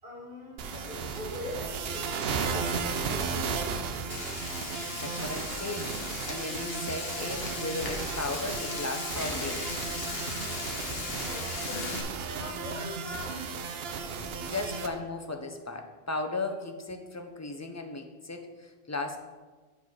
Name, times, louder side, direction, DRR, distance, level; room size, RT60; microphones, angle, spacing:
voice 1, 0.0-4.0 11.2-13.4, left 1 dB, 60° right, -5 dB, 2.5 m, -42 dB
sound 1, 0.6-14.9, right 5 dB, 75° right, 0.9 m, -35 dB
Frying (food), 4.1-12.0, left 4 dB, 75° left, 1.1 m, -38 dB
voice 2, 5.0-9.7 14.5-19.2, left 2 dB, 20° left, 4 dB, 0.5 m, -36 dB
sound 2, 9.1-12.4, equal, 15° right, 1.5 m, -47 dB
7.3 x 4.6 x 5.8 m, 1.3 s
omnidirectional pair, 1.0 m